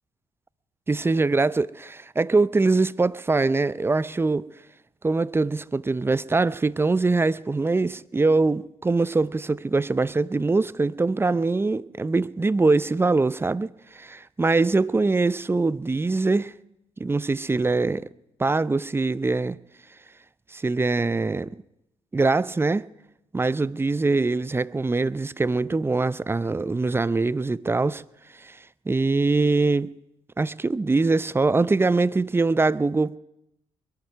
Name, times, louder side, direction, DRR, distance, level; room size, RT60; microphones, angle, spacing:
voice 1, 0.9-4.5 5.0-16.5 17.0-18.1 18.4-19.6 20.5-21.5 22.1-22.9 23.3-28.0 28.4-28.6 28.9-29.9 30.4-33.2, right 3 dB, 15° right, 0.5 m, -23 dB
22.0 x 9.3 x 6.7 m
supercardioid pair, 55°, 13 cm